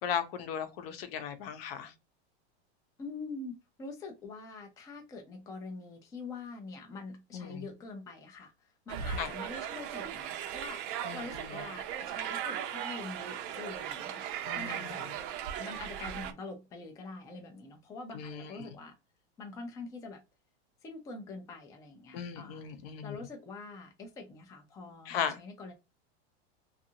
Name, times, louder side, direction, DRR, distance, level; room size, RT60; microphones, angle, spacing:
voice 1, 0.0-1.9 7.3-7.6 9.2-9.3 11.0-11.6 14.5-15.2 18.1-18.7 22.1-23.2 25.1-25.4, left 8 dB, 60° left, 0.8 m, -37 dB
voice 2, 3.0-8.5 8.9-10.8 11.1-15.0 15.6-18.9 19.4-20.2 20.8-22.6 23.0-25.7, left 3 dB, 10° left, 0.4 m, -44 dB
sound 1, 8.9-16.3, right 9 dB, 50° right, 0.6 m, -38 dB
2.6 x 2.4 x 2.7 m
supercardioid pair, 145°, 33 cm